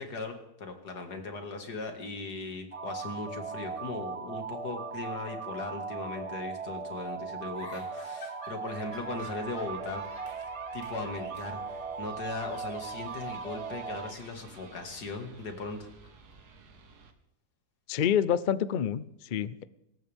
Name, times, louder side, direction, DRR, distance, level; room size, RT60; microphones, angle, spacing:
voice 1, 0.0-10.0 10.7-15.9, left 3 dB, 90° left, 5 dB, 2.6 m, -38 dB
sound 1, 2.7-14.1, right 5 dB, 35° right, 0.6 m, -38 dB
sound 2, 7.5-10.5 10.8-11.1 11.4-11.6 12.5-13.6 14.0-16.3, left 2 dB, 40° left, 3.2 m, -51 dB
sound 3, 8.7-17.1, right 4 dB, 80° right, 2.0 m, -52 dB
voice 2, 17.9-19.7, left 9 dB, 70° left, 16 dB, 0.4 m, -28 dB
25.5 x 13.5 x 3.6 m, 0.86 s
omnidirectional pair, 1.7 m